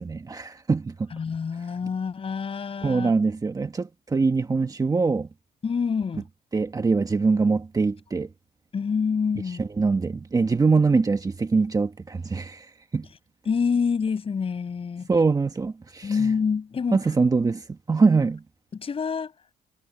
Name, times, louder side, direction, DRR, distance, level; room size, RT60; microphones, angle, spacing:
voice 1, 0.0-1.1 2.8-5.3 6.5-8.3 9.6-12.7 12.9-13.1 15.1-16.3 16.9-18.4, right 4 dB, 20° right, 1.5 m, -23 dB
voice 2, 1.1-3.1 5.6-6.2 8.7-9.6 13.5-15.1 16.0-17.0 18.7-19.3, left 6 dB, 35° left, 5.8 m, -26 dB
cardioid pair, 110°, 17 cm